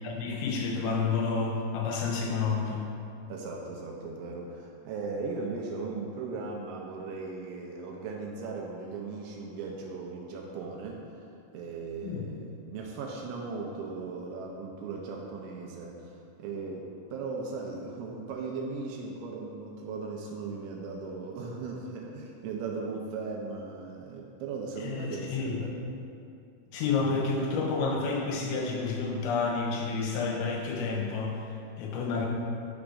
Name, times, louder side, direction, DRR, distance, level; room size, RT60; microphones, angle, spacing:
voice 1, 0.0-2.9 12.0-12.3 24.8-25.7 26.7-32.3, left 4 dB, 80° left, 0 dB, 2.8 m, -30 dB
voice 2, 3.3-11.0 11.5-25.8, right 4 dB, 85° right, -1 dB, 2.8 m, -38 dB
13.5 x 4.9 x 2.5 m, 2.5 s
omnidirectional pair, 5.6 m